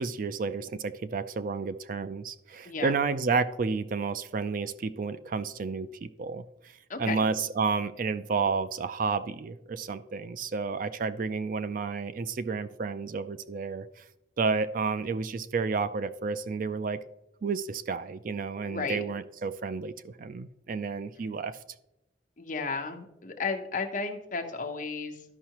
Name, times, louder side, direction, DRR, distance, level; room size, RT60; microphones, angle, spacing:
voice 1, 0.0-6.4 7.0-14.0 14.4-17.0 17.4-21.6, right 4 dB, 45° right, 12 dB, 0.4 m, -31 dB
voice 2, 2.6-3.0 6.9-7.2 18.6-19.0 22.4-25.2, left 4 dB, 45° left, 4 dB, 0.9 m, -33 dB
13.0 x 5.6 x 2.9 m, 0.88 s
head